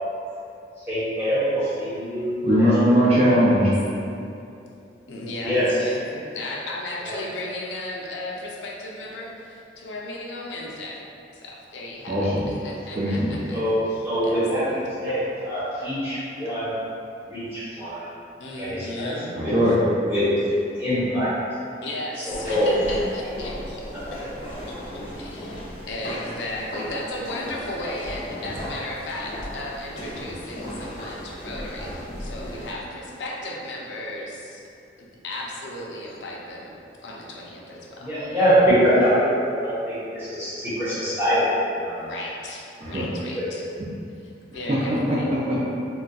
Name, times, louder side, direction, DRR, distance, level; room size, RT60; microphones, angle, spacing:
voice 1, 0.9-2.7 5.4-5.8 7.0-7.1 13.5-13.7 14.0-16.8 17.2-18.1 18.6-19.1 19.4-19.5 20.0-21.4 22.2-22.8 38.0-39.3 39.6-41.5 41.7-42.0 43.4-43.5, equal, 15° right, -13 dB, 1.1 m, -24 dB
voice 2, 2.4-3.7 12.1-12.5 12.9-13.3 19.4-19.8 42.8-43.1 44.7-45.6, equal, 35° right, -7 dB, 0.4 m, -20 dB
voice 3, 5.1-11.0 11.3-13.6 14.2-14.8 18.4-19.3 19.7-19.8 21.8-23.6 23.8-24.2 24.7-34.6 35.0-36.7 37.0-38.1 42.0-43.7 44.2-45.3, left 1 dB, 85° left, -3 dB, 0.5 m, -35 dB
sound 1, 22.3-32.7, equal, 45° left, 0.9 m, -36 dB
3.9 x 2.1 x 2.3 m, 2.7 s
head